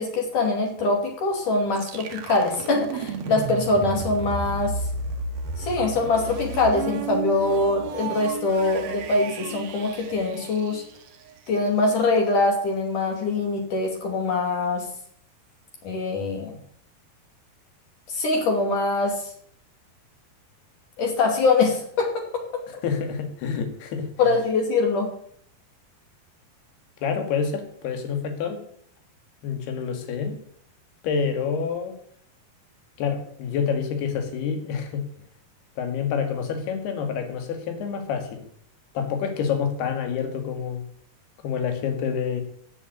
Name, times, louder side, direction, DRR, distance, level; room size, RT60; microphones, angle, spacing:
voice 1, 0.0-4.7 5.6-10.8 11.5-14.9 15.8-16.5 18.1-19.3 21.0-22.2 24.2-25.1, left 3 dB, 55° left, 1 dB, 4.1 m, -23 dB
sound 1, 1.7-11.6, right 4 dB, 55° right, 2.0 m, -33 dB
voice 2, 22.8-24.1 27.0-28.6 29.4-30.4 31.0-31.9 33.0-35.0 35.8-38.4 38.9-40.8 41.4-42.4, left 6 dB, 80° left, 6 dB, 4.1 m, -27 dB
13.5 x 8.3 x 9.3 m, 0.63 s
omnidirectional pair, 4.6 m